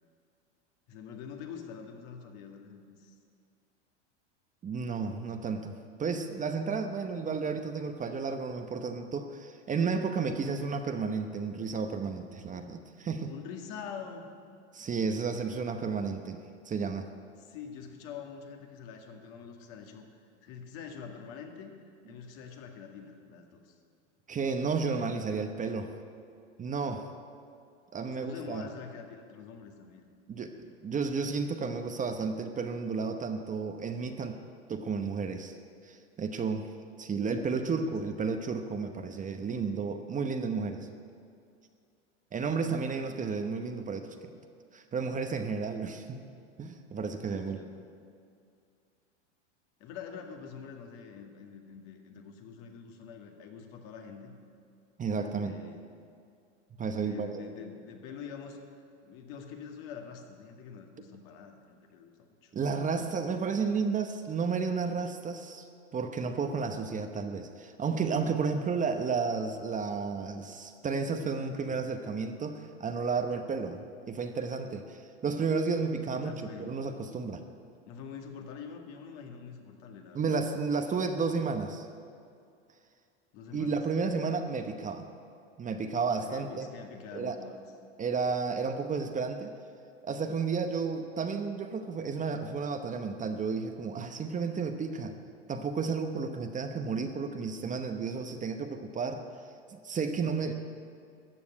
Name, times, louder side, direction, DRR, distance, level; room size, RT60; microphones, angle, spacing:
voice 1, 0.9-3.2 13.3-14.3 17.4-21.7 22.1-23.8 28.1-30.1 37.4-38.0 47.3-47.8 49.8-54.3 55.3-55.8 57.0-58.6 59.0-62.5 76.1-76.7 77.9-80.2 83.3-83.8 86.2-87.6 100.2-100.5, left 6 dB, 60° left, 3 dB, 2.1 m, -45 dB
voice 2, 4.6-5.7 6.0-13.3 14.7-16.4 16.6-17.1 24.3-25.9 26.6-27.0 27.9-28.6 30.3-30.5 30.8-34.4 34.7-35.6 35.8-36.7 37.0-40.9 42.3-44.3 44.7-46.2 46.6-47.6 55.0-55.5 56.8-57.5 62.5-65.6 65.9-76.3 76.6-77.4 80.1-81.9 83.5-85.1 85.6-86.7 87.1-87.4 88.0-89.5 90.0-95.1 95.5-99.2 99.7-100.5, right 5 dB, 20° right, 6 dB, 0.9 m, -32 dB
14.0 x 7.1 x 9.8 m, 2.4 s
hypercardioid pair, 105°, 35 cm